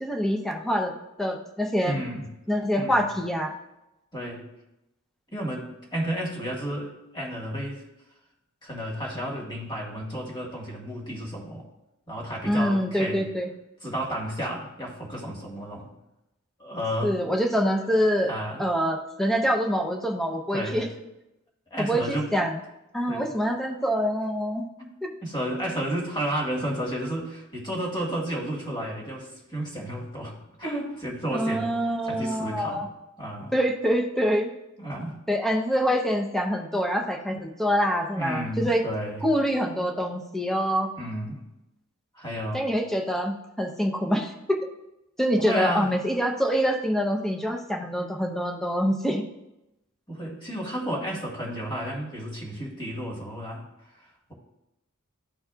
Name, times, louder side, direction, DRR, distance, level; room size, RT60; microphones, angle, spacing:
voice 1, 0.0-0.9 1.2-2.0 2.5-3.6 12.5-13.5 17.0-18.3 18.6-20.9 21.8-22.6 22.9-24.6 25.0-25.1 31.3-32.9 33.5-34.5 35.3-38.8 39.2-40.9 42.5-44.6 45.2-49.2, equal, ahead, 1 dB, 0.7 m, -25 dB
voice 2, 1.8-2.3 2.8-3.1 4.1-4.5 5.3-7.8 8.6-11.7 12.1-13.3 13.8-15.9 16.6-17.2 18.2-18.6 20.5-20.8 21.7-22.3 23.1-23.3 24.8-24.9 25.2-31.7 32.0-32.8 33.2-33.5 34.8-35.2 37.3-37.4 38.2-39.3 41.0-41.4 42.2-42.7 45.4-45.9 50.1-53.6, equal, 20° left, -2 dB, 1.7 m, -32 dB
12.5 x 4.1 x 2.4 m, 0.91 s
head